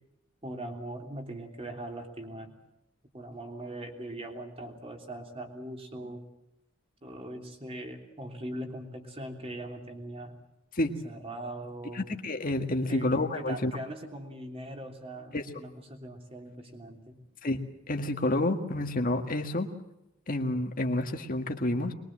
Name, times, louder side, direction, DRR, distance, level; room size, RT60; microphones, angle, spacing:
voice 1, 0.4-2.5 3.1-6.2 7.0-10.4 11.0-12.0 12.9-17.2, right 1 dB, 30° right, 3 dB, 3.3 m, -41 dB
voice 2, 11.9-13.7 15.3-15.5 17.4-19.7 20.3-21.9, left 1 dB, 45° left, 5 dB, 1.8 m, -29 dB
22.5 x 22.0 x 7.5 m, 0.89 s
head